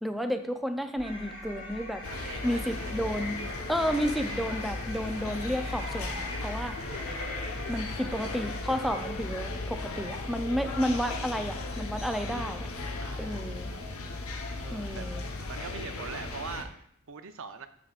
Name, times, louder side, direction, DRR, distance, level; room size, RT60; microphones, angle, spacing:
voice 1, 0.0-2.0 2.4-3.4 3.7-6.9 7.7-12.7 13.2-13.7 14.7-15.2, equal, ahead, 6 dB, 0.4 m, -31 dB
sound 1, 1.0-9.5, left 1 dB, 60° left, 2.7 m, -41 dB
sound 2, 2.0-16.6, left 2 dB, 75° left, 0.9 m, -36 dB
voice 2, 2.2-2.9 13.0-13.6 14.6-15.1 15.5-17.7, right 6 dB, 65° right, 9 dB, 0.6 m, -42 dB
12.5 x 5.0 x 2.4 m, 0.69 s
head